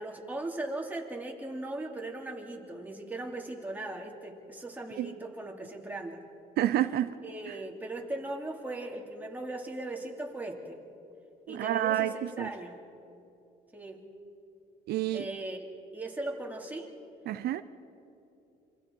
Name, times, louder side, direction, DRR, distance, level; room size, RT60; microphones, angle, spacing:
voice 1, 0.0-6.2 7.2-10.8 11.5-12.8 13.7-14.0 15.1-15.7 15.9-16.9, right 2 dB, 10° right, 0 dB, 3.0 m, -38 dB
voice 2, 6.6-7.2 7.5-7.6 11.5-12.1 12.4-12.5 14.9-15.3 17.3-17.6, right 13 dB, 70° right, 10 dB, 0.7 m, -28 dB
27.5 x 26.0 x 4.7 m, 2.8 s
cardioid pair, 110°, 17 cm